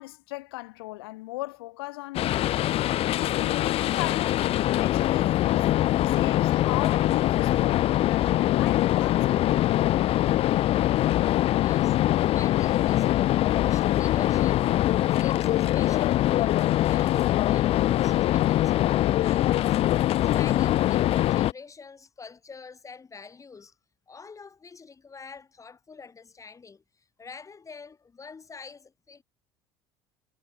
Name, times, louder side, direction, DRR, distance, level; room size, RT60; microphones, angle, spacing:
voice 1, 0.0-4.4 4.7-9.8, left 21 dB, 80° left, 3.9 m, -38 dB
sound 1, 2.1-21.5, left 14 dB, 55° left, 1.0 m, -23 dB
voice 2, 11.5-12.0 12.3-19.8 20.3-23.7 24.1-26.8 27.2-29.2, left 5 dB, 25° left, 4.3 m, -46 dB
hypercardioid pair, 75°, 12 cm